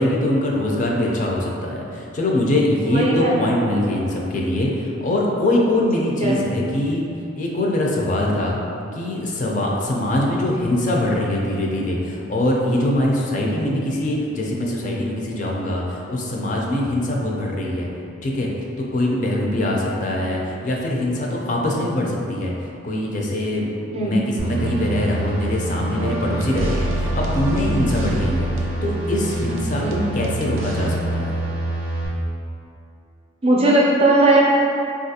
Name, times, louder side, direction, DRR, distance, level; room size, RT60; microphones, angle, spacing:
voice 1, 0.0-7.0 7.4-8.6 8.9-17.9 18.2-18.5 18.8-22.5 22.8-23.7 24.0-28.5 28.8-31.4, left 1 dB, 40° left, -2 dB, 0.4 m, -23 dB
voice 2, 2.9-3.6 6.2-6.4 23.9-24.2 29.8-30.1 33.4-34.4, right 2 dB, 30° right, -4 dB, 0.4 m, -18 dB
sound 1, 24.4-32.1, right 2 dB, 80° left, 1.2 m, -26 dB
sound 2, 26.0-31.0, right 1 dB, 90° right, 0.4 m, -28 dB
3.8 x 2.4 x 2.7 m, 2.7 s
head